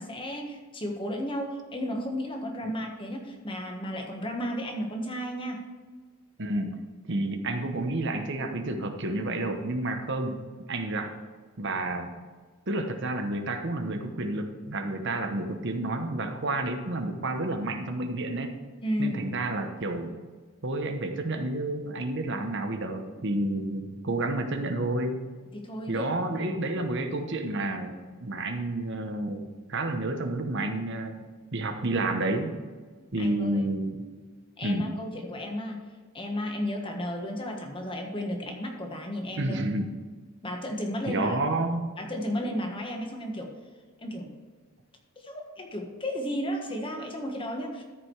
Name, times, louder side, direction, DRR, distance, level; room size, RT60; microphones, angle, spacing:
voice 1, 0.0-5.6 18.8-19.2 25.5-26.1 33.2-33.6 34.6-35.8 36.1-39.6 40.4-41.4 42.0-43.5 44.0-44.3 45.2-47.8, equal, 25° left, 1 dB, 1.4 m, -33 dB
voice 2, 6.4-6.7 7.1-10.4 10.7-11.1 11.6-12.1 12.7-18.5 19.0-20.1 20.6-25.2 25.9-29.4 29.7-32.5 33.1-34.0 34.6-34.9 39.4-39.9 41.1-41.8, right 2 dB, 55° right, 5 dB, 1.0 m, -30 dB
13.5 x 5.0 x 4.7 m, 1.5 s
head